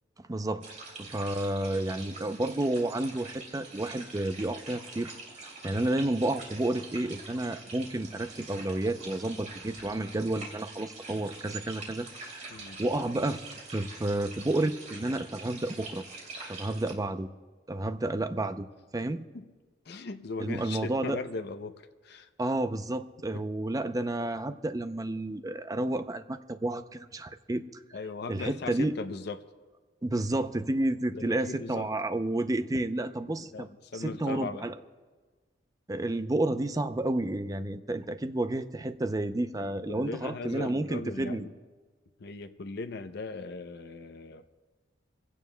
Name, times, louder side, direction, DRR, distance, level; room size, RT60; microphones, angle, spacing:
voice 1, 0.3-0.7 1.0-5.1 5.6-12.4 12.8-13.4 13.7-16.0 16.5-17.3 17.7-18.7 18.9-19.3 20.4-21.2 22.4-27.6 28.3-29.0 30.0-33.7 33.9-34.8 35.9-41.5, right 1 dB, 20° right, 10 dB, 0.5 m, -31 dB
sound 1, 0.6-16.9, right 3 dB, 40° right, 2.7 m, -45 dB
voice 2, 12.5-12.8 19.3-19.5 19.9-21.7 22.0-22.3 23.3-23.4 27.9-29.4 31.1-31.9 33.5-34.6 39.9-41.5 42.2-44.4, left 3 dB, 60° left, 8 dB, 0.6 m, -38 dB
25.0 x 16.0 x 2.2 m, 1.4 s
head